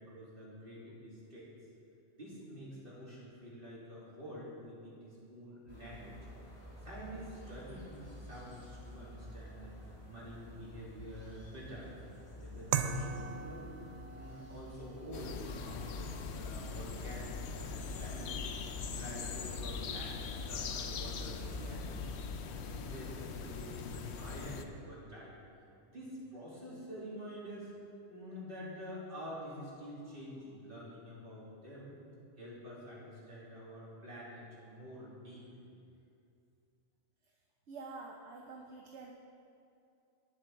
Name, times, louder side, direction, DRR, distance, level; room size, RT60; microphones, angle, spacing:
voice 1, 0.0-1.5 2.1-6.2 6.8-9.7 10.1-18.4 18.9-25.3 25.8-27.7 28.1-31.9 32.4-35.7, equal, 40° right, -7 dB, 3.1 m, -48 dB
sound 1, 5.7-21.8, equal, 25° left, 2.7 m, -51 dB
sound 2, 12.7-21.6, right 7 dB, 90° right, 1.0 m, -43 dB
sound 3, 15.1-24.6, left 5 dB, 60° left, 0.9 m, -41 dB
voice 2, 37.7-39.1, right 3 dB, 60° right, 1 dB, 1.1 m, -47 dB
19.5 x 7.1 x 3.5 m, 2.6 s
omnidirectional pair, 1.4 m